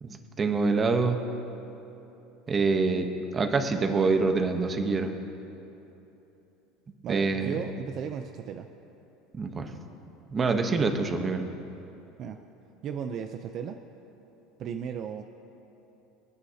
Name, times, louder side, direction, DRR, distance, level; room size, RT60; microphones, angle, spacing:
voice 1, 0.0-1.2 2.5-5.1 7.1-7.6 9.3-9.7 10.3-11.5, right 4 dB, 20° right, 5 dB, 0.9 m, -26 dB
voice 2, 7.0-8.7 12.2-12.4 12.8-13.8 14.6-15.2, right 7 dB, 40° right, 6 dB, 0.5 m, -35 dB
28.5 x 9.6 x 2.8 m, 3.0 s
cardioid pair, 150°, 0 cm